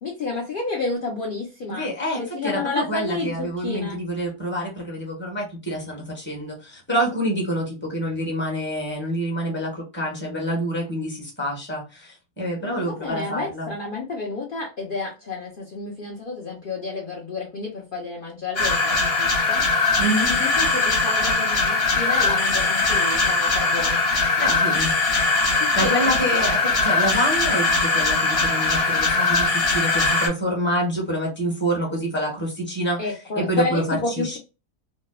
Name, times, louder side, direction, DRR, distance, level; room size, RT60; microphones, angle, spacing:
voice 1, 0.0-1.9 2.1-4.0 12.6-19.6 20.3-24.0 25.6-26.6 33.0-34.4, left 3 dB, 60° left, -3 dB, 0.5 m, -30 dB
voice 2, 1.7-13.7 20.0-20.3 24.4-24.9 25.5-34.4, equal, 10° left, -1 dB, 0.8 m, -27 dB
sound 1, 18.6-30.3, left 3 dB, 45° left, 1.0 m, -21 dB
2.7 x 2.1 x 2.2 m, 0.29 s
omnidirectional pair, 1.7 m